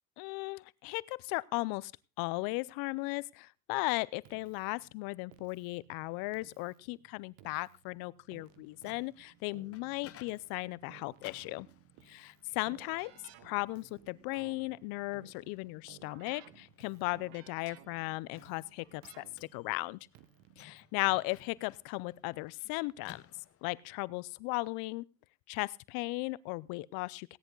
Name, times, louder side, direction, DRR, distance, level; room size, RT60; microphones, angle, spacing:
voice 1, 0.2-1.9 2.2-11.7 12.1-13.1 13.4-19.2 19.5-20.0 20.6-23.2 23.6-25.0 25.5-27.4, left 24 dB, 75° left, 22 dB, 0.6 m, -36 dB
Keyboard (musical), 4.2-21.7, right 12 dB, 70° right, 1.4 m, -59 dB
Microwave oven, 8.5-23.9, left 10 dB, 40° left, 0.9 m, -60 dB
17.0 x 10.5 x 3.9 m, 0.32 s
supercardioid pair, 95°, 37 cm